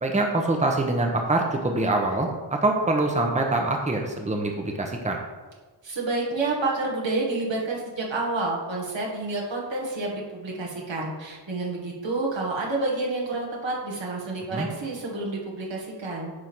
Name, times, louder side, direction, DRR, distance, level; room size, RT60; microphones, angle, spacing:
voice 1, 0.0-5.2 14.5-14.7, right 2 dB, 15° right, 2 dB, 0.9 m, -24 dB
voice 2, 5.8-16.3, right 2 dB, 80° right, -3 dB, 1.9 m, -29 dB
9.7 x 3.6 x 6.1 m, 1.3 s
wide cardioid pair, 95°, 44 cm